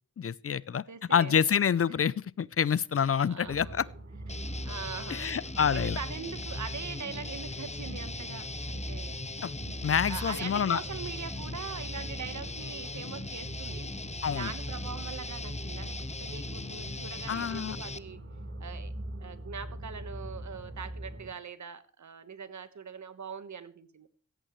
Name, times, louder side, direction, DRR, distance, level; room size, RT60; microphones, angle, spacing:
voice 1, 0.2-0.8 1.1-3.9 5.1-6.0 9.4-9.5 9.8-10.8 14.2-14.5 17.3-17.8, left 7 dB, 50° left, 0.5 m, -27 dB
voice 2, 0.9-1.4 3.2-3.9 4.3-9.2 10.1-13.9 14.2-18.2 18.6-18.9 19.2-24.1, right 6 dB, 70° right, 1.3 m, -42 dB
sound 1, 3.4-21.3, right 1 dB, 45° right, 3.9 m, -41 dB
Guitar, 4.3-18.0, left 3 dB, 20° left, 0.7 m, -40 dB
16.5 x 14.0 x 3.1 m
wide cardioid pair, 70°, 30 cm